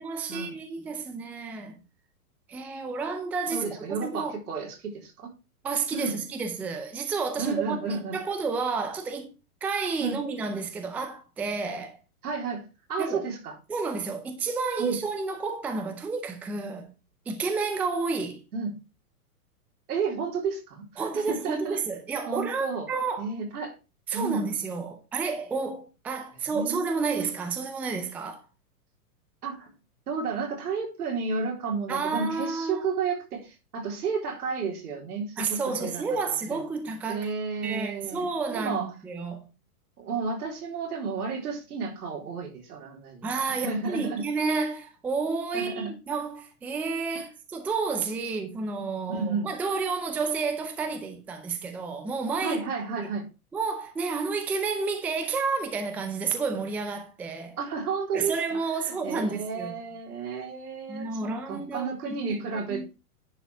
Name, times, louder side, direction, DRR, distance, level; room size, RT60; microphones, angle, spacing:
voice 1, 0.0-1.8 2.5-4.3 5.6-9.3 9.6-12.0 13.0-13.2 13.7-16.9 17.3-18.4 21.0-23.3 24.1-28.4 31.9-32.9 35.4-37.3 37.6-39.4 43.2-52.6 53.0-53.1 53.5-57.6 58.1-59.7 60.9-62.8, right 4 dB, 5° right, 0.5 m, -31 dB
voice 2, 3.5-5.3 5.9-6.2 7.4-8.2 10.0-10.2 12.2-13.6 14.8-15.0 18.5-18.7 19.9-21.8 22.3-22.9 23.2-23.7 24.1-24.5 26.4-27.0 29.4-29.7 30.1-36.0 36.5-36.6 37.1-38.9 40.0-44.2 45.5-45.9 47.1-47.2 49.1-49.5 52.4-53.3 57.6-62.9, right 5 dB, 85° right, 3.7 m, -32 dB
10.0 x 5.1 x 4.8 m
hypercardioid pair, 145°, 44 cm